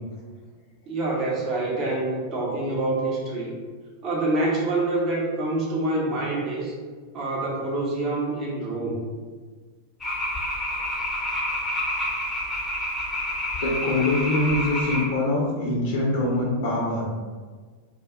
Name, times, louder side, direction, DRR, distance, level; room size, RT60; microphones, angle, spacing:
voice 1, 0.9-3.5 4.0-6.7 7.1-9.1, right 2 dB, 30° right, -4 dB, 0.8 m, -26 dB
sound 1, 10.0-15.1, left 1 dB, 15° left, 0.7 m, -28 dB
voice 2, 13.6-17.0, left 2 dB, 50° left, -5 dB, 0.6 m, -24 dB
2.3 x 2.0 x 3.6 m, 1.5 s
figure-of-eight pair, 90°, 0 cm